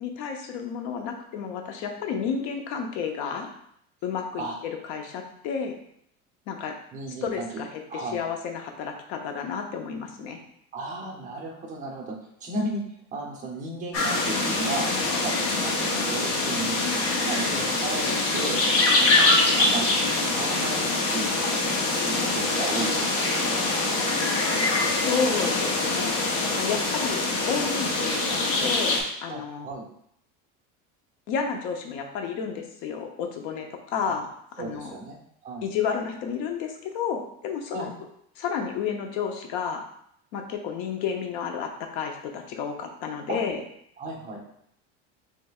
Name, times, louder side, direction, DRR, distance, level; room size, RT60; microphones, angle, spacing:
voice 1, 0.0-3.5 4.0-4.5 4.8-5.7 6.5-6.7 7.1-10.4 25.0-26.1 26.6-29.7 31.3-34.3 34.6-34.9 35.6-37.9 38.4-39.8 40.3-43.6, left 6 dB, 75° left, 4 dB, 0.8 m, -31 dB
voice 2, 6.9-7.6 7.9-8.2 10.7-12.8 13.1-14.9 15.1-15.3 15.6-16.9 17.2-18.6 19.0-19.3 19.6-21.8 22.1-23.6 29.3-29.9 34.0-34.2 34.6-35.2 35.4-35.7 37.7-37.9 43.3-43.4 44.0-44.4, right 2 dB, 25° right, 0 dB, 0.9 m, -34 dB
sound 1, 13.9-29.0, left 2 dB, 45° left, 1.0 m, -24 dB
6.4 x 3.3 x 2.4 m, 0.70 s
cardioid pair, 170°, 30 cm